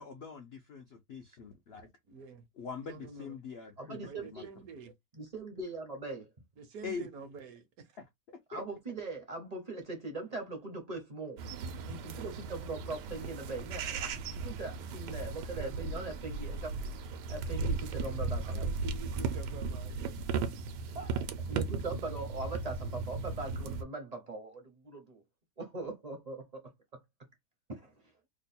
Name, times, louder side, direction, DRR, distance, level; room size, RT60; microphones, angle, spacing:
voice 1, 0.0-1.9 2.6-4.0 4.3-4.4 6.8-7.1 8.0-8.6, left 5 dB, 70° left, 0.5 m, -43 dB
voice 2, 2.1-2.4 2.8-3.4 4.1-4.9 6.6-7.6 18.4-20.0, right 6 dB, 65° right, 1.1 m, -47 dB
voice 3, 3.8-4.5 5.1-6.3 8.5-11.4 11.9-16.8 17.3-18.7 20.9-25.2 25.6-27.0 27.8-27.9, right 3 dB, 35° right, 0.6 m, -41 dB
sound 1, 11.4-23.8, right 4 dB, 85° right, 1.2 m, -36 dB
3.0 x 2.2 x 4.0 m
omnidirectional pair, 1.8 m